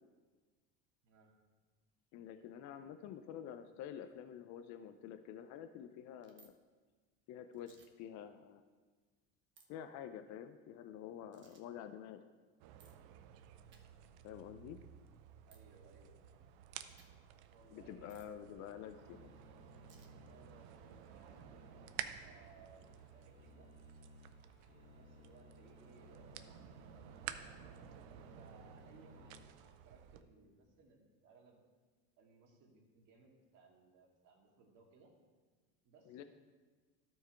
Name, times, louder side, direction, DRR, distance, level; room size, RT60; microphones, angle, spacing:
voice 1, 2.1-6.5 7.3-8.6 9.7-12.3 14.2-14.8 17.7-19.3 36.1-36.2, left 9 dB, 55° left, 9 dB, 0.5 m, -49 dB
sound 1, 6.2-6.5 7.5-7.9 9.6-9.7 11.3-11.6 12.8-12.9 13.7-13.8 15.5-15.6 16.9-17.1 18.1-18.3 19.9-20.1, right 5 dB, 35° right, 1.1 m, -64 dB
sound 2, 12.6-30.2, right 11 dB, 75° right, 0.6 m, -53 dB
voice 2, 15.5-16.5 17.5-18.7 20.3-23.7 24.7-26.7 28.0-31.6 32.2-35.1 35.8-36.2, right 4 dB, 55° right, -1 dB, 2.1 m, -64 dB
sound 3, 19.0-29.4, left 3 dB, 30° left, 1.7 m, -62 dB
12.5 x 4.6 x 4.5 m, 1.4 s
supercardioid pair, 110°, 35 cm